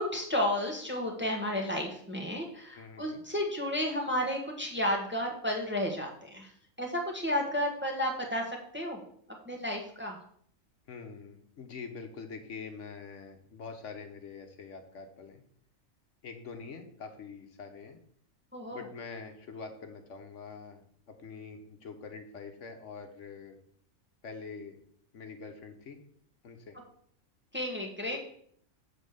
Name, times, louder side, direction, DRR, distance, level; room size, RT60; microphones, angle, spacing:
voice 1, 0.0-6.5 6.8-9.0 9.4-10.2 18.5-18.8 27.5-28.2, left 1 dB, 10° right, 1 dB, 1.2 m, -32 dB
voice 2, 2.7-3.2 10.9-15.4 16.2-18.0 18.7-23.6 24.2-24.8 25.1-26.0 26.4-26.8, left 5 dB, 65° left, 5 dB, 1.3 m, -45 dB
7.4 x 4.5 x 6.5 m, 0.63 s
omnidirectional pair, 1.4 m